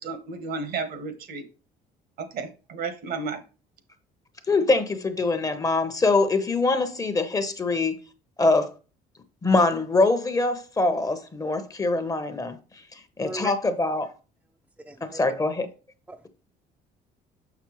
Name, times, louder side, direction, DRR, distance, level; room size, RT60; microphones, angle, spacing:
voice 1, 0.0-1.5 2.2-3.4, right 4 dB, 65° right, 1.3 m, -33 dB
voice 2, 4.5-8.0 8.4-8.7 9.4-12.6 12.9-14.1 15.0-15.7, left 3 dB, 20° left, 0.9 m, -23 dB
voice 3, 14.9-15.3 16.1-16.3, right 2 dB, 5° right, 0.6 m, -38 dB
6.4 x 6.0 x 3.1 m
cardioid pair, 110°, 17 cm